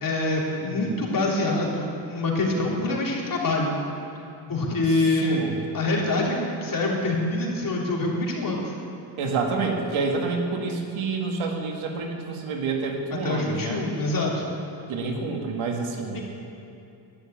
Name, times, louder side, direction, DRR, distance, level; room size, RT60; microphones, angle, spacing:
voice 1, 0.0-3.8 4.5-5.4 5.7-8.7 13.2-14.4 16.1-16.2, left 2 dB, 45° left, -3 dB, 3.4 m, -25 dB
voice 2, 0.6-1.0 5.2-5.6 9.2-13.8 14.9-16.2, right 4 dB, 85° right, 2 dB, 2.1 m, -28 dB
11.5 x 11.0 x 8.8 m, 2.7 s
cardioid pair, 105°, 47 cm